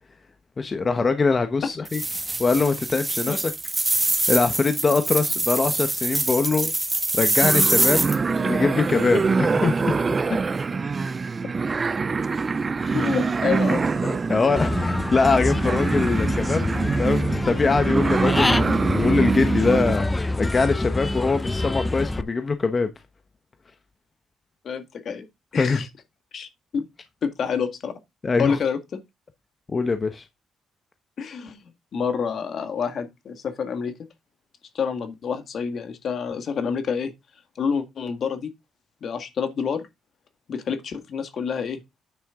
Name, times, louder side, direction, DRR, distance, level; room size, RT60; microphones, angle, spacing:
voice 1, 0.6-2.0 2.4-3.5 4.0-6.7 7.2-8.1 8.4-9.8 12.8-12.9 14.3-16.7 17.0-22.9 25.6-25.8 28.2-28.6 29.7-30.2, left 4 dB, 35° left, 1.1 m, -23 dB
sound 1, 1.8-8.2, right 2 dB, 15° right, 1.5 m, -24 dB
sound 2, 7.4-20.0, right 4 dB, 35° right, 0.4 m, -25 dB
voice 2, 12.9-14.2 24.6-25.3 25.5-25.9 26.3-26.9 27.2-27.9 28.4-29.0 31.2-31.6 31.9-33.9 34.7-37.1 37.6-38.5 39.0-39.8 40.5-41.8, left 6 dB, 60° left, 1.7 m, -28 dB
Human voice / Bird, 14.6-22.2, left 2 dB, 15° left, 0.7 m, -26 dB
9.4 x 6.4 x 3.7 m
cardioid pair, 90°, 0 cm